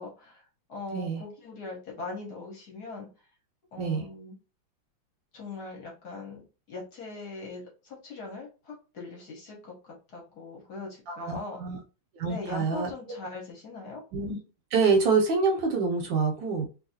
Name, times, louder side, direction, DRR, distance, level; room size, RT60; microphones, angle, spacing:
voice 1, 0.0-3.3 3.7-4.3 5.3-11.6 12.3-14.0, left 3 dB, 55° left, -2 dB, 1.3 m, -41 dB
voice 2, 11.1-11.8 12.2-12.9 14.1-14.4 14.7-16.7, right 4 dB, 75° right, 3 dB, 1.2 m, -26 dB
3.1 x 2.6 x 2.6 m, 0.32 s
omnidirectional pair, 2.3 m